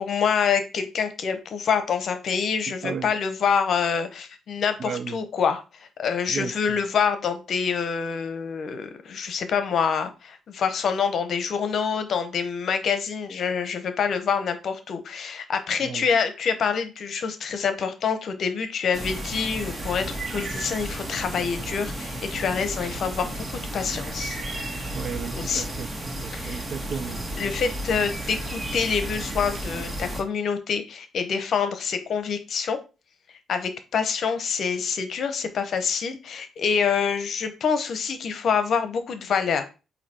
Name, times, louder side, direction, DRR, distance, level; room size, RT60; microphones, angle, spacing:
voice 1, 0.0-24.4 25.3-25.6 26.3-26.7 27.4-32.8 33.5-39.6, left 6 dB, 60° left, 0.9 m, -26 dB
voice 2, 2.8-3.1 4.8-5.2 6.3-6.8 15.8-16.1 24.9-25.9 26.2-27.3, right 7 dB, 55° right, 0.5 m, -34 dB
sound 1, 18.9-30.2, right 1 dB, 25° right, 1.6 m, -33 dB
8.0 x 2.8 x 4.3 m
cardioid pair, 90°, 0 cm